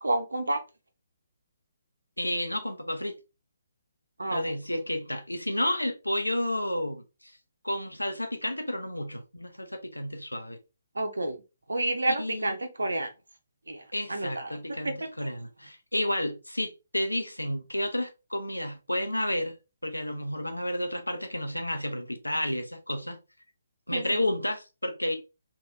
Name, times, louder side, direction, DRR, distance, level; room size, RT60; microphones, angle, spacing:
voice 1, 0.0-0.6 4.2-4.5 10.9-11.4 11.7-13.1 13.7-13.8 14.1-14.6 14.8-14.9 23.9-24.2, right 2 dB, 70° right, 0.8 m, -29 dB
voice 2, 2.2-3.2 4.3-7.3 7.6-10.6 12.1-12.6 13.9-19.6 19.8-23.2 23.9-25.1, left 1 dB, 85° left, 0.7 m, -31 dB
3.2 x 2.6 x 2.6 m
figure-of-eight pair, 135°, 0 cm